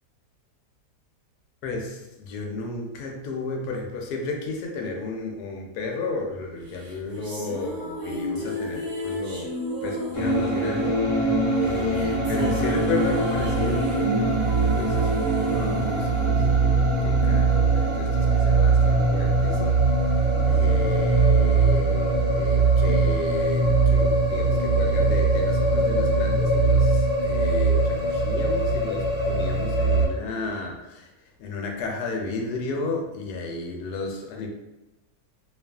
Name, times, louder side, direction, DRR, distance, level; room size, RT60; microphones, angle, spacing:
voice 1, 1.6-19.9 20.2-31.1 31.4-34.5, left 3 dB, 80° left, 2 dB, 1.1 m, -33 dB
sound 1, 6.7-17.1, right 1 dB, 55° right, 1.0 m, -32 dB
sound 2, 10.1-30.1, right 3 dB, 40° left, 0.8 m, -21 dB
2.7 x 2.4 x 2.3 m, 1.0 s
omnidirectional pair, 1.7 m